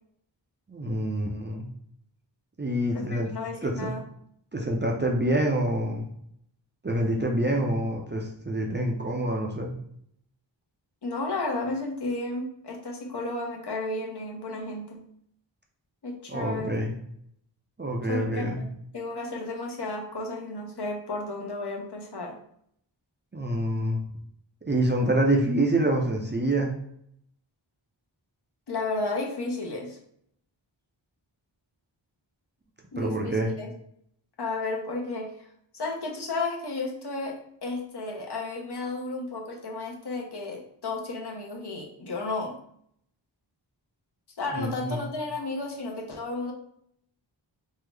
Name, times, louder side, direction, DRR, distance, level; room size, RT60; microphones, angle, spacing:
voice 1, 0.7-1.7 2.6-3.3 3.6-3.9 4.5-6.1 6.8-9.7 16.3-17.0 17.8-18.6 23.3-24.0 24.6-26.7 33.0-33.5 44.5-45.1, right 1 dB, 25° right, 0 dB, 0.5 m, -26 dB
voice 2, 2.9-4.0 11.0-15.0 16.0-16.8 18.1-18.6 18.9-22.4 28.7-30.0 32.9-33.7 34.4-35.5 35.7-42.6 44.4-46.5, left 2 dB, 55° left, 1 dB, 0.7 m, -33 dB
3.6 x 2.0 x 3.2 m, 0.69 s
wide cardioid pair, 45°, 47 cm